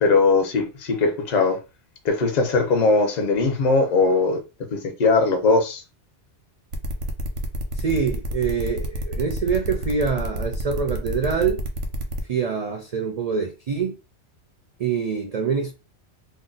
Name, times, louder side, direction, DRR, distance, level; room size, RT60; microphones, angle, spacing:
voice 1, 0.0-1.6 2.0-4.4 4.7-5.8, left 3 dB, 45° left, 0.7 m, -20 dB
sound 1, 6.7-12.2, right 1 dB, 85° right, 1.0 m, -29 dB
voice 2, 7.7-11.6 12.3-14.0 14.8-15.7, right 6 dB, 55° right, 0.4 m, -25 dB
2.6 x 2.0 x 3.8 m
omnidirectional pair, 1.2 m